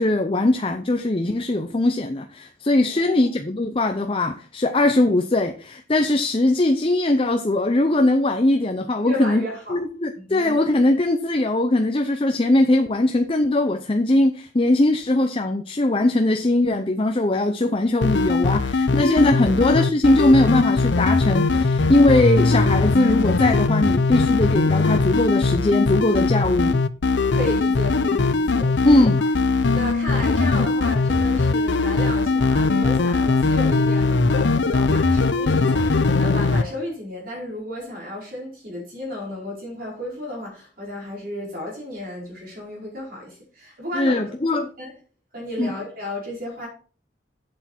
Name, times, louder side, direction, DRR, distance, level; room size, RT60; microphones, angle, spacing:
voice 1, 0.0-9.4 9.7-26.8 28.8-29.2 43.9-44.7 45.6-45.7, left 1 dB, 30° left, 0.6 m, -20 dB
voice 2, 2.8-3.3 9.0-9.8 10.2-10.7 27.3-28.9 29.7-44.9 45.3-46.7, left 1 dB, 50° right, 5.0 m, -33 dB
sound 1, 18.0-36.6, left 3 dB, 70° left, 0.7 m, -20 dB
8.2 x 7.8 x 4.4 m
head